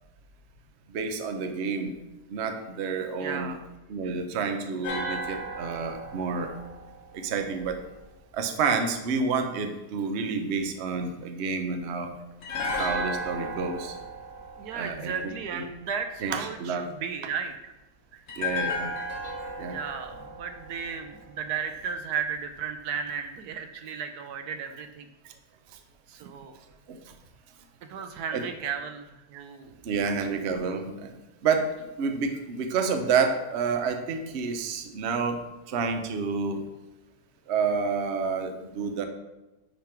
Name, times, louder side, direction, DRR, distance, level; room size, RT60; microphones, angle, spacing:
voice 1, 0.9-2.0 2.3-3.5 3.9-6.5 7.1-7.8 8.3-12.1 12.8-14.0 14.7-15.6 16.2-16.9 18.4-18.9 19.6-19.8 23.9-24.0 26.9-27.0 28.3-28.4 29.3-29.4 29.8-31.1 31.4-31.7 32.0-35.4 35.7-36.6 37.5-39.1, right 5 dB, 55° right, 6 dB, 0.9 m, -29 dB
voice 2, 3.2-3.7 14.6-17.7 19.7-25.1 26.1-26.6 27.9-29.8 30.0-30.4, right 6 dB, 75° right, 7 dB, 1.1 m, -35 dB
sound 1, 4.8-8.0 12.4-15.6 18.3-21.5 21.8-21.9, left 1 dB, 65° left, 1.8 m, -35 dB
10.0 x 3.7 x 4.4 m, 1.0 s
omnidirectional pair, 1.8 m